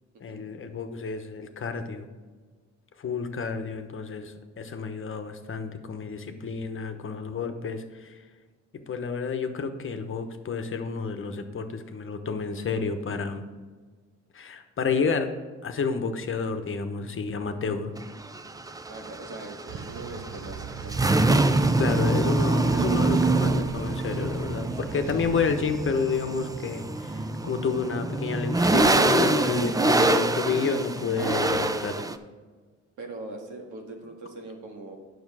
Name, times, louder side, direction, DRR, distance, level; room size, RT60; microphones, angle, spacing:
voice 1, 0.2-2.1 3.0-8.3 8.9-13.4 14.3-15.3 15.6-17.9 21.8-32.1, left 5 dB, 45° left, 7 dB, 1.0 m, -30 dB
sound 1, 18.0-32.2, right 2 dB, 10° right, 0.5 m, -25 dB
voice 2, 18.9-21.4 33.0-35.0, right 2 dB, 85° right, 1 dB, 1.9 m, -41 dB
sound 2, 19.7-26.0, right 6 dB, 40° right, 0.8 m, -40 dB
8.9 x 6.5 x 4.8 m, 1.4 s
cardioid pair, 90°, 30 cm